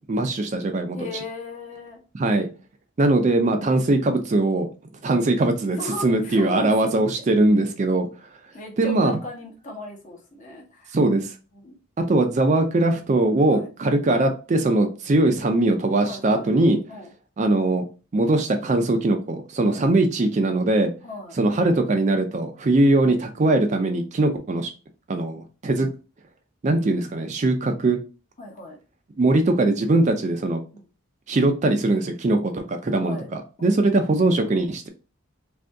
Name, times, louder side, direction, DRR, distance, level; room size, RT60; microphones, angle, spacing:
voice 1, 0.1-1.0 2.1-2.5 3.0-4.7 5.0-5.8 6.0-8.1 8.8-9.2 10.9-11.3 12.1-16.8 17.4-17.8 18.1-20.9 21.4-24.7 25.1-25.9 26.6-28.0 29.2-30.6 31.3-33.2 33.6-34.9, right 2 dB, 35° right, 5 dB, 0.4 m, -21 dB
voice 2, 0.9-2.0 5.8-6.9 8.5-11.0 11.5-11.8 13.5-13.7 16.0-16.5 16.9-17.1 19.7-19.9 21.0-21.4 28.4-28.8 30.7-30.9 33.0-33.8, left 2 dB, 35° left, 0 dB, 0.9 m, -36 dB
2.7 x 2.6 x 3.3 m, 0.33 s
head